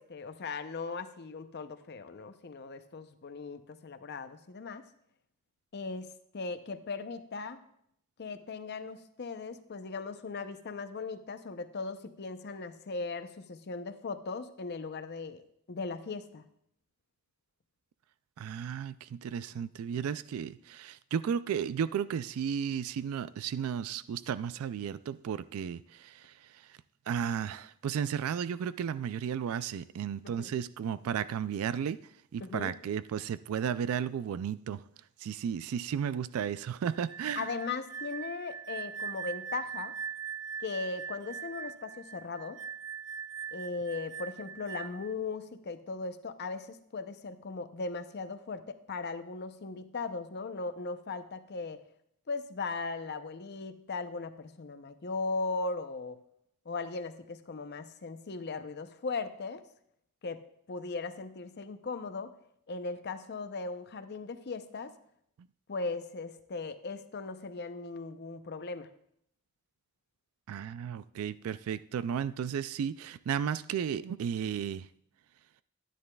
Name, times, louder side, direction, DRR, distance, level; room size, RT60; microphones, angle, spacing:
voice 1, 0.0-4.8 5.7-7.6 8.2-15.4 15.7-16.5 30.2-30.5 32.4-32.7 37.4-39.9 40.6-42.6 43.5-51.8 52.3-56.2 56.7-59.6 60.2-60.4 60.7-62.3 62.7-64.9 65.7-68.9, left 4 dB, 50° left, 0.6 m, -38 dB
voice 2, 18.4-26.3 27.1-32.0 32.3-34.8 35.2-37.5 70.5-74.9, right 8 dB, 80° right, 0.3 m, -34 dB
sound 1, 36.9-45.1, right 7 dB, 60° right, 0.8 m, -41 dB
12.5 x 10.0 x 2.3 m
head